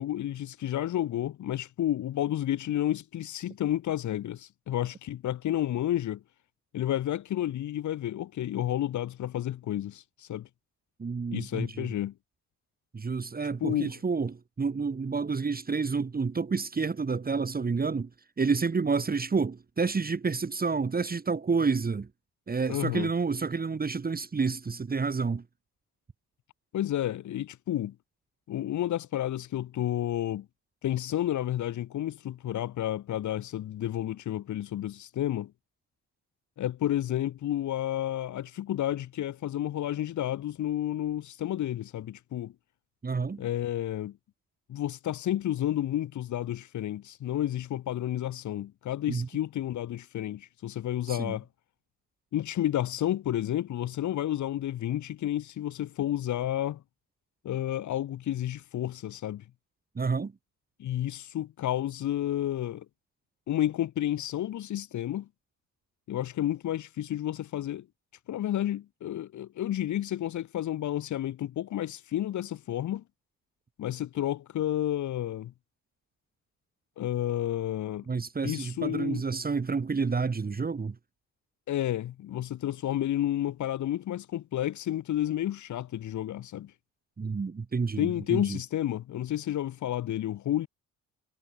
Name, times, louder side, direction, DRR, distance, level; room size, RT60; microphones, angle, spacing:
voice 1, 0.0-6.2 6.7-10.5 11.3-12.1 13.6-13.9 22.7-23.1 26.7-28.0 28.5-30.5 30.8-35.5 36.6-42.5 43.4-44.2 44.7-51.5 52.3-56.8 57.4-59.4 60.8-62.9 63.5-65.3 66.1-67.9 68.3-73.0 73.8-75.5 77.0-78.0 78.4-79.2 81.7-86.7 88.0-90.7, left 12 dB, 70° left, 2.6 m, -31 dB
voice 2, 11.0-11.9 12.9-18.1 18.4-22.1 22.5-25.4 43.0-43.4 49.1-49.3 51.1-51.4 59.9-60.3 78.1-80.9 87.2-88.6, right 4 dB, 30° right, 3.3 m, -29 dB
cardioid pair, 90°, 30 cm